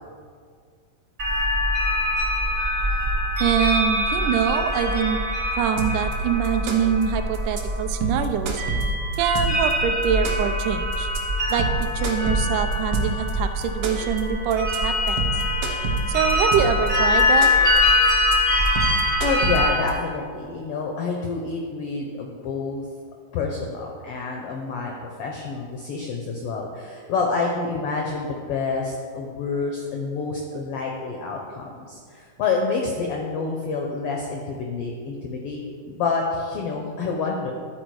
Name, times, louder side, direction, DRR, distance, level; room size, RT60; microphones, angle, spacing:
sound 1, 1.2-19.7, left 1 dB, 50° right, 0.9 m, -23 dB
voice 1, 3.4-5.2 5.6-8.6 9.2-11.1 11.5-15.3 16.1-17.5, right 8 dB, 85° right, 8 dB, 2.0 m, -24 dB
sound 2, 5.8-6.1 6.4-7.0 7.3-7.6 7.9-9.7 10.0-10.6 10.9-11.2 11.5-13.3 13.6-14.2 14.5-14.8 15.1-16.9 17.2-17.8 18.1-18.3 18.7-19.9, right 4 dB, 70° right, 1.4 m, -27 dB
voice 2, 19.2-22.8 23.3-37.5, left 4 dB, 85° left, 1 dB, 1.3 m, -28 dB
11.0 x 4.1 x 4.7 m, 2.1 s
omnidirectional pair, 3.5 m